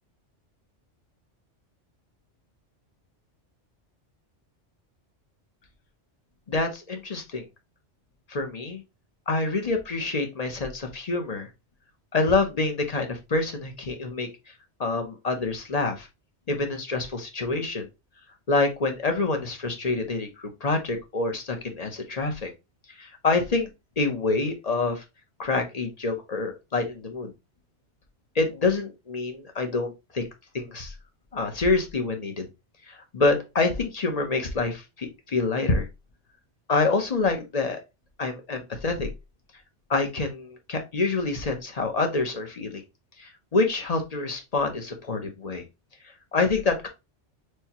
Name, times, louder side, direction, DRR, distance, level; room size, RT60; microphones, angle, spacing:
voice 1, 6.5-7.4 8.3-8.8 9.3-11.5 12.1-14.3 14.8-16.1 16.5-17.9 18.5-22.5 23.0-23.7 24.0-25.0 25.4-27.3 28.3-30.2 30.5-30.9 31.3-32.5 32.9-35.9 36.7-37.8 38.2-39.1 39.9-42.8 43.2-45.6 46.0-46.9, left 3 dB, 40° left, 5 dB, 0.8 m, -26 dB
6.4 x 2.2 x 2.8 m, 0.24 s
omnidirectional pair, 1.2 m